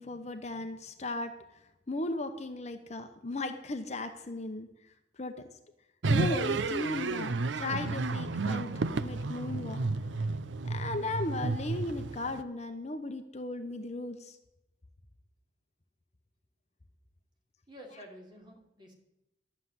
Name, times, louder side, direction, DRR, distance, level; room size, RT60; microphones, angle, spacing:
voice 1, 0.0-1.3 1.9-4.7 5.2-5.5 6.1-8.7 9.0-9.8 10.6-14.4, left 2 dB, 40° left, 7 dB, 0.9 m, -36 dB
sound 1, 6.0-12.4, right 3 dB, 85° right, 0.6 m, -32 dB
voice 2, 17.7-18.9, equal, 25° right, 1 dB, 3.1 m, -51 dB
12.0 x 7.3 x 9.6 m, 0.89 s
head